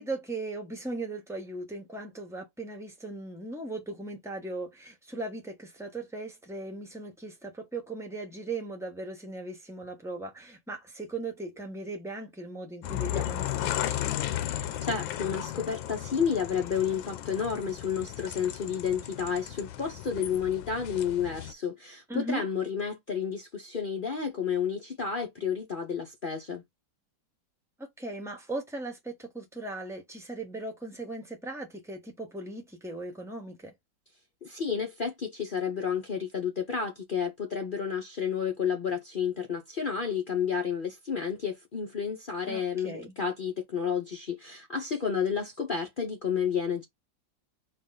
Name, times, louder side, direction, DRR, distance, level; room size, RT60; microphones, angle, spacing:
voice 1, 0.0-14.0 22.1-22.4 27.8-33.7 42.5-43.1, right 2 dB, ahead, 0.7 m, -38 dB
sound 1, 12.8-21.5, left 12 dB, 85° left, 1.4 m, -35 dB
voice 2, 14.8-26.6 34.4-46.8, left 7 dB, 70° left, 0.4 m, -31 dB
4.4 x 2.4 x 3.8 m
omnidirectional pair, 2.0 m